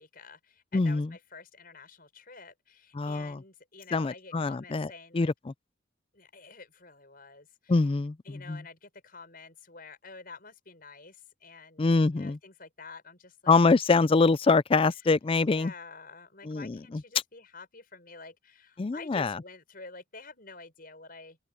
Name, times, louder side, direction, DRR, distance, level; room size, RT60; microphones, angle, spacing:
voice 1, 0.0-5.3 6.1-7.8 8.2-13.6 14.8-15.0 15.4-21.4, left 4 dB, 50° left, 6.8 m, -49 dB
voice 2, 0.7-1.1 3.0-3.4 3.9-4.9 5.1-5.3 7.7-8.1 8.5-8.6 11.8-12.4 13.5-15.7 16.5-16.8 18.8-19.4, left 3 dB, 30° left, 0.4 m, -24 dB
open air
head